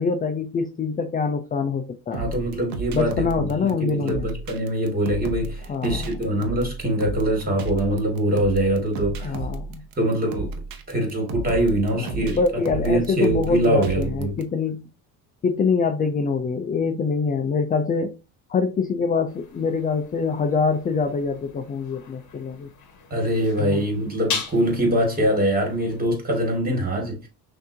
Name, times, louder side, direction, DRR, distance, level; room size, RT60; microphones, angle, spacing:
voice 1, 0.0-2.2 2.9-4.3 5.7-6.0 9.2-9.8 11.9-14.9 15.4-18.1 18.5-22.7 23.6-23.8, left 5 dB, 20° left, 0.4 m, -25 dB
voice 2, 2.1-9.4 10.0-10.5 10.9-14.4 23.1-27.3, right 1 dB, 20° right, 2.1 m, -23 dB
sound 1, 2.1-14.4, right 3 dB, 50° right, 0.9 m, -33 dB
sound 2, 19.3-26.1, left 5 dB, 40° left, 1.4 m, -38 dB
5.9 x 2.8 x 2.7 m
supercardioid pair, 105°, 44 cm